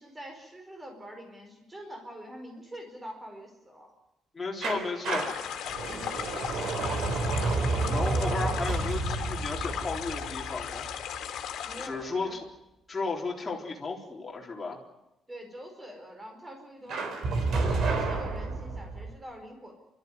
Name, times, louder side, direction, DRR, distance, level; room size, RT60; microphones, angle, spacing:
voice 1, 0.0-3.9 5.9-6.1 7.7-8.5 11.6-12.4 15.3-17.2 17.7-19.7, equal, 15° right, 3 dB, 5.0 m, -44 dB
voice 2, 4.3-5.3 7.9-10.9 11.8-12.4 12.9-14.8, left 3 dB, 15° left, -2 dB, 4.0 m, -34 dB
sound 1, 4.6-11.4 16.9-19.1, right 3 dB, 55° right, 3.7 m, -30 dB
sound 2, 5.0-11.9, left 9 dB, 75° left, 2.6 m, -37 dB
30.0 x 13.5 x 9.6 m, 0.93 s
cardioid pair, 165°, 0 cm